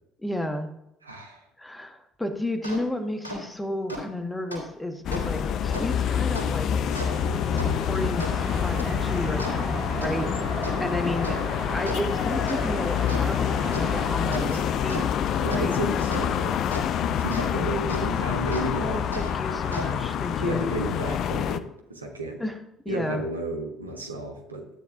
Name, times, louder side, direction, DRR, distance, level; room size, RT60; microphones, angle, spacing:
voice 1, 0.2-0.7 1.6-6.8 7.5-10.3 10.8-15.1 15.5-15.7 18.8-20.7 22.4-22.6 22.8-23.2, left 1 dB, 10° left, 6 dB, 1.4 m, -32 dB
voice 2, 1.0-1.4 14.3-14.6 15.4-16.6 17.2-19.0 20.4-22.4 22.9-24.7, right 2 dB, 85° right, 2 dB, 1.2 m, -33 dB
sound 1, 2.6-2.8 3.2-3.4 3.9-4.0 4.5-4.6 5.1-5.2 5.7-5.8 6.3-6.5 6.9-17.5 17.9-18.0 18.5-18.7 19.1-20.2, equal, 85° left, 2.2 m, -38 dB
sound 2, 5.0-21.6, left 8 dB, 50° left, 0.5 m, -27 dB
Traffic noise roadway noise, 8.3-14.2, right 2 dB, 45° right, 4.0 m, -35 dB
12.5 x 9.3 x 2.5 m, 0.82 s
figure-of-eight pair, 55°, 0 cm